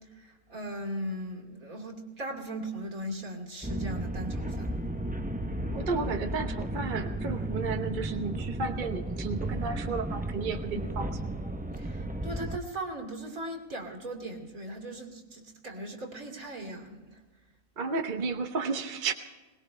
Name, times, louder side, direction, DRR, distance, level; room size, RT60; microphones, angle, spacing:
voice 1, 0.0-4.8 11.8-17.2, right 1 dB, 70° right, 1 dB, 3.2 m, -38 dB
sound 1, 3.6-12.6, right 1 dB, 10° right, 0.4 m, -34 dB
voice 2, 5.7-11.2 17.8-19.1, right 4 dB, 40° right, 5 dB, 1.0 m, -33 dB
22.0 x 19.5 x 3.3 m, 1.2 s
omnidirectional pair, 1.5 m